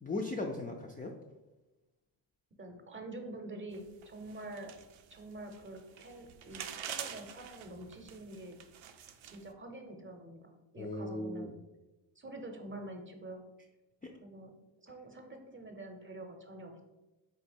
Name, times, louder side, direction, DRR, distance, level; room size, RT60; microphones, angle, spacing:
voice 1, 0.0-1.2 10.8-11.5 14.0-14.1, left 2 dB, 20° left, 1 dB, 0.3 m, -37 dB
voice 2, 2.6-4.7 5.1-8.6 9.2-11.6 12.2-13.4 14.2-14.5 14.8-16.8, right 2 dB, 25° right, 4 dB, 0.8 m, -46 dB
sound 1, 3.7-9.5, right 9 dB, 75° right, 0.6 m, -47 dB
4.0 x 2.8 x 4.4 m, 1.1 s
cardioid pair, 80°, 48 cm